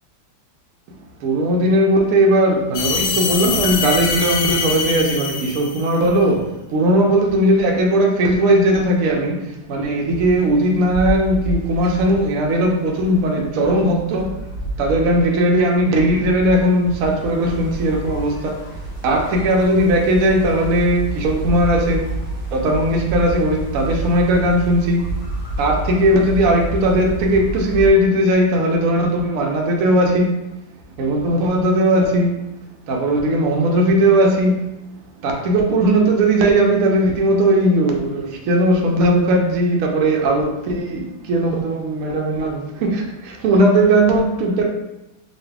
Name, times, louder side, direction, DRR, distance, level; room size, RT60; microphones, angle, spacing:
voice 1, 1.2-14.4 14.8-22.1 22.5-25.2 25.6-30.4 31.0-32.5 32.9-34.6 35.2-44.6, right 1 dB, 70° right, 0.8 m, -18 dB
sound 1, 2.7-6.1, left 5 dB, 70° left, 0.8 m, -23 dB
sound 2, 10.1-27.9, right 2 dB, 45° left, 1.7 m, -29 dB
3.9 x 2.3 x 3.4 m
omnidirectional pair, 2.1 m